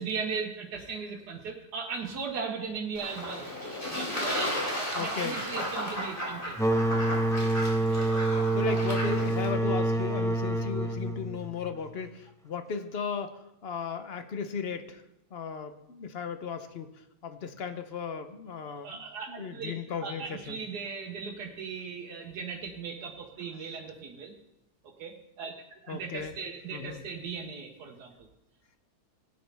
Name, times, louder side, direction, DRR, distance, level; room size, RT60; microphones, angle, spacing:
voice 1, 0.0-3.5 3.9-6.6 7.9-8.2 18.7-24.3 25.0-25.6 25.8-28.3, right 5 dB, 90° right, 1 dB, 1.6 m, -38 dB
Fowl / Bird / Water, 2.9-9.5, equal, 35° left, 3.4 m, -34 dB
voice 2, 4.9-5.4 8.5-15.0 15.3-16.9 17.2-19.0 19.3-20.6 25.9-26.4 26.7-27.0, left 5 dB, 50° left, 8 dB, 0.8 m, -36 dB
sound 1, 6.6-12.0, right 2 dB, 5° left, 0.5 m, -27 dB
17.0 x 9.4 x 3.4 m, 0.87 s
omnidirectional pair, 1.7 m